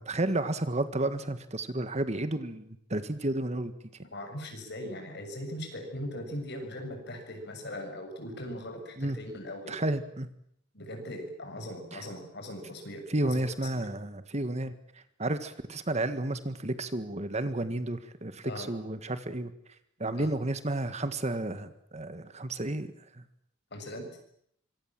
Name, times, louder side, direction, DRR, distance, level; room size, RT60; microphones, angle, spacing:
voice 1, 0.0-3.7 9.0-9.2 9.7-10.3 11.9-12.0 13.1-14.8 15.2-19.5 20.0-23.2, right 1 dB, 35° right, 11 dB, 1.7 m, -32 dB
voice 2, 4.1-9.7 10.7-13.4 13.7-13.9 18.4-18.7 20.2-20.3 23.7-24.1, left 1 dB, 60° left, 5 dB, 6.8 m, -40 dB
26.0 x 24.5 x 7.6 m, 0.70 s
head